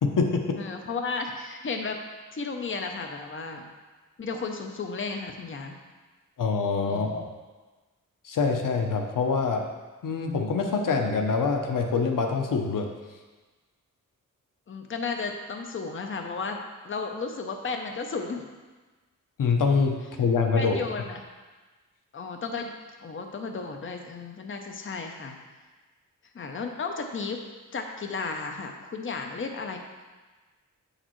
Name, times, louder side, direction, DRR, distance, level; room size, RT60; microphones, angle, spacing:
voice 1, 0.0-0.4 6.4-7.3 8.2-9.6 10.0-12.9 19.4-20.8, left 4 dB, 80° left, 3 dB, 0.8 m, -25 dB
voice 2, 0.5-2.0 2.3-3.6 4.2-5.7 6.9-7.3 14.7-16.6 16.8-18.4 20.6-21.2 22.1-22.7 23.0-25.4 26.3-27.4 27.7-29.8, left 4 dB, 40° left, 4 dB, 0.7 m, -33 dB
7.7 x 6.5 x 3.1 m, 1.3 s
wide cardioid pair, 110°, 32 cm